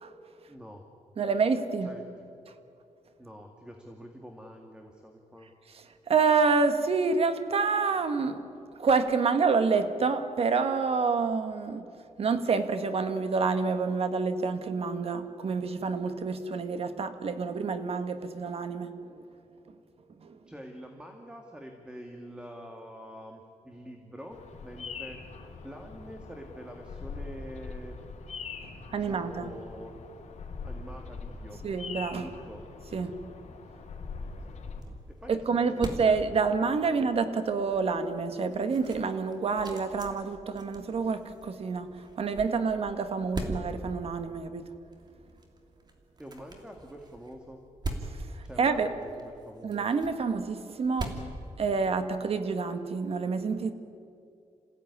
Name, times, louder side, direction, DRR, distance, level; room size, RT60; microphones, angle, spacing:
voice 1, 0.5-0.8 1.8-2.3 3.2-5.5 20.5-28.0 28.7-30.0 30.6-31.6 32.2-32.6 35.1-36.0 36.8-36.9 46.2-47.6 48.4-49.7, equal, 5° right, 3 dB, 2.2 m, -46 dB
voice 2, 1.2-1.9 6.1-8.4 8.8-11.9 12.2-19.0 20.2-20.4 28.9-29.5 31.6-32.3 32.9-33.2 35.3-44.7 48.6-48.9 49.6-51.1 51.6-53.7, right 4 dB, 55° right, 9 dB, 1.8 m, -28 dB
Bird vocalization bird call bird song, 24.3-34.8, left 4 dB, 65° left, 3.2 m, -42 dB
sound 1, 33.6-52.3, right 2 dB, 35° right, 3.2 m, -43 dB
27.5 x 16.5 x 9.8 m, 2.5 s
cardioid pair, 115°, 12 cm